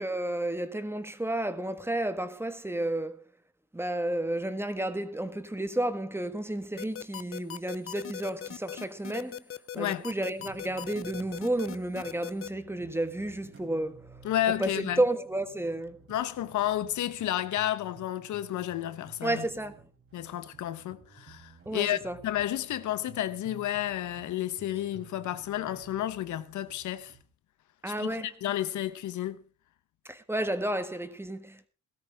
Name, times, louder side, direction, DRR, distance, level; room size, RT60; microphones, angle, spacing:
voice 1, 0.0-3.2 3.7-9.4 9.7-14.1 14.6-16.0 19.2-19.8 21.6-22.2 27.8-28.3 30.1-31.7, right 1 dB, 10° right, 1.5 m, -31 dB
sound 1, 6.8-12.5, left 10 dB, 50° left, 0.7 m, -39 dB
voice 2, 9.7-10.0 14.2-15.0 16.1-19.4 20.1-27.1 27.9-29.4, left 12 dB, 75° left, 1.0 m, -31 dB
sound 2, 10.3-27.2, right 5 dB, 45° right, 3.7 m, -54 dB
17.5 x 13.5 x 3.5 m
cardioid pair, 90°, 30 cm